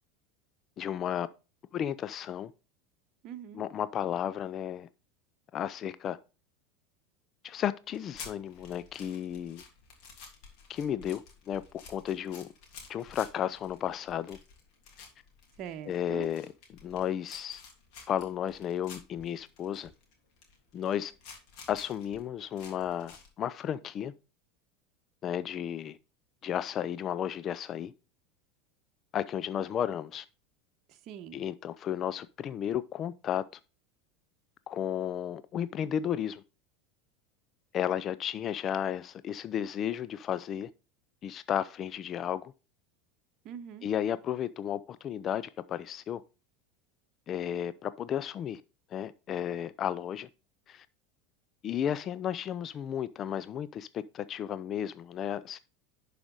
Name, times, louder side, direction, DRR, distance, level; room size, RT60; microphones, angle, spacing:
voice 1, 0.8-1.3 1.7-2.5 3.5-4.9 5.5-6.2 7.4-9.6 10.7-11.6 11.9-12.5 12.9-14.4 15.9-16.5 16.8-17.6 18.1-19.9 20.7-21.1 21.7-24.1 25.2-26.0 26.4-27.9 29.1-30.2 31.3-33.4 34.7-36.4 37.7-40.7 41.2-42.5 43.8-46.2 47.3-48.6 48.9-50.3 50.7-50.9 51.6-55.6, left 9 dB, 40° left, 0.5 m, -33 dB
voice 2, 3.2-3.6 15.6-16.3 30.9-31.4 43.4-43.9, right 9 dB, 45° right, 1.0 m, -43 dB
sound 1, 7.9-23.3, left 5 dB, 60° left, 3.1 m, -51 dB
11.0 x 5.0 x 3.9 m
hypercardioid pair, 80°, 0 cm